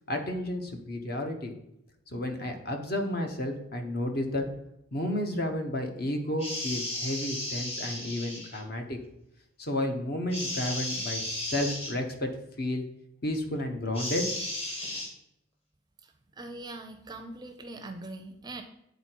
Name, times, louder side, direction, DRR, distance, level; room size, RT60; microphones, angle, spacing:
voice 1, 0.1-1.5 2.1-4.4 4.9-9.0 9.6-12.3 12.6-12.8 13.2-14.2, left 1 dB, 50° left, 4 dB, 0.9 m, -32 dB
sound 1, 6.4-8.6 10.3-11.9 13.9-15.1, left 1 dB, 30° left, 1.3 m, -34 dB
voice 2, 16.0-18.6, right 2 dB, 20° right, 6 dB, 0.5 m, -42 dB
8.3 x 3.9 x 4.5 m, 0.82 s
head